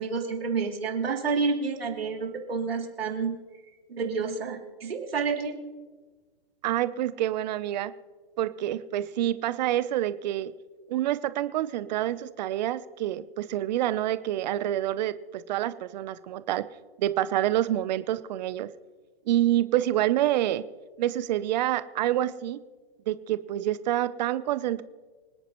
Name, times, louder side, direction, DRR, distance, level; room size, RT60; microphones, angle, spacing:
voice 1, 0.0-3.4 3.9-5.6, right 5 dB, 85° right, 1 dB, 3.0 m, -29 dB
voice 2, 6.6-7.9 8.4-10.5 10.9-16.6 17.0-18.7 19.3-20.6 21.0-22.6 23.1-24.8, right 13 dB, 45° right, 14 dB, 0.7 m, -27 dB
26.0 x 9.2 x 3.1 m, 1.4 s
hypercardioid pair, 135°, 29 cm